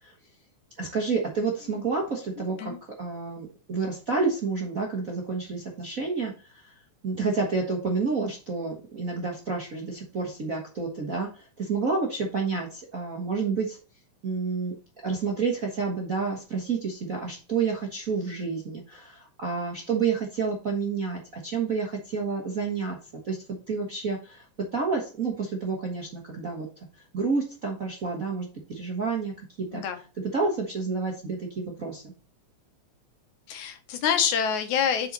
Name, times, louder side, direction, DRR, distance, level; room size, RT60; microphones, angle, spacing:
voice 1, 0.8-2.7 3.0-6.7 7.0-13.8 14.2-14.7 15.0-23.0 23.2-23.4 23.7-24.4 24.7-26.7 27.1-29.8 30.3-32.1, right 4 dB, 45° right, 0 dB, 1.1 m, -29 dB
voice 2, 2.4-2.8 29.7-30.0 33.5-35.1, left 8 dB, 75° left, 7 dB, 2.4 m, -27 dB
7.7 x 5.6 x 4.1 m, 0.35 s
omnidirectional pair, 3.5 m